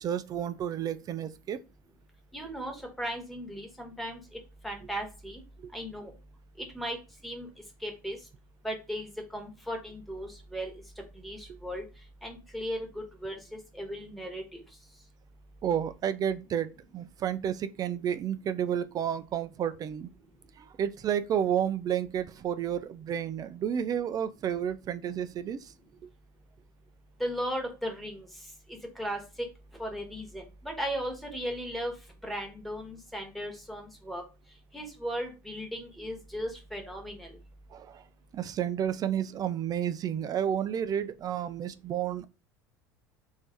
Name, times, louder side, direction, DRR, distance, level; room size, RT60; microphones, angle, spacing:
voice 1, 0.0-1.6 11.5-11.6 15.6-16.7 16.9-20.1 20.6-25.7 37.7-38.0 38.3-42.3, right 9 dB, 35° right, 0.3 m, -31 dB
voice 2, 2.3-4.2 4.6-5.4 5.7-6.1 6.6-7.0 7.2-7.5 7.8-8.2 8.6-10.7 11.2-11.8 12.2-14.6 27.2-28.3 28.7-29.2 29.8-31.9 32.2-34.2 34.7-37.3, equal, ahead, 1.3 m, -36 dB
3.2 x 2.7 x 3.3 m
hypercardioid pair, 80°, 11 cm